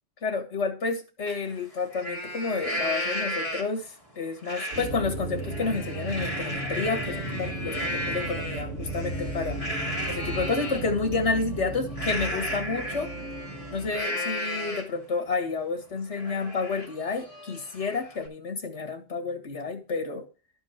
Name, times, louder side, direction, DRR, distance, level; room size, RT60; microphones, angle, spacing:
voice 1, 0.2-9.7 10.1-13.1 13.7-20.3, left 4 dB, 80° left, 1.9 m, -30 dB
Livestock farm animals working animals, 1.3-1.4 1.8-3.9 4.4-4.9 5.3-10.8 11.9-15.0 15.5-15.6 15.9-18.3, equal, 30° left, 2.3 m, -34 dB
sound 1, 4.7-14.0, right 2 dB, 80° right, 1.8 m, -35 dB
12.5 x 4.6 x 5.8 m
omnidirectional pair, 1.2 m